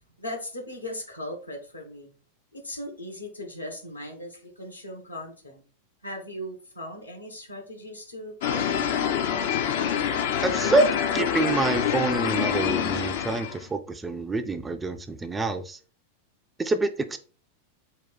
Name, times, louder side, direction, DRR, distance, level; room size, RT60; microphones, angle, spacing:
voice 1, 0.0-2.1 2.5-5.6 6.0-9.1, left 1 dB, 85° left, 2 dB, 1.2 m, -38 dB
sound 1, 8.4-13.6, left 8 dB, 55° left, 0.5 m, -26 dB
voice 2, 10.4-15.8 16.6-17.2, right 2 dB, 15° right, 9 dB, 0.4 m, -26 dB
4.4 x 2.3 x 3.9 m, 0.37 s
figure-of-eight pair, 90°, 0 cm